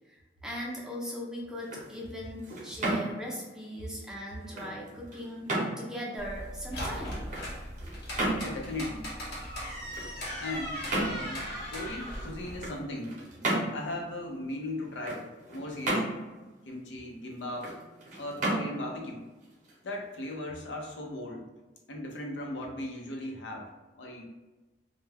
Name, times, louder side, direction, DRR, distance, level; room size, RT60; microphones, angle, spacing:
voice 1, 0.1-5.5 5.8-7.2, equal, 5° right, -4 dB, 0.5 m, -39 dB
sound 1, 1.5-20.3, right 1 dB, 45° right, 0.7 m, -36 dB
sound 2, 6.2-12.7, equal, 65° left, 0.9 m, -38 dB
voice 2, 8.4-9.1 10.4-13.2 13.7-16.2 16.7-17.7 18.2-19.2 19.8-21.5 21.9-23.7 23.9-24.3, left 1 dB, 85° left, 1 dB, 0.5 m, -38 dB
2.2 x 2.1 x 3.3 m, 1.2 s
head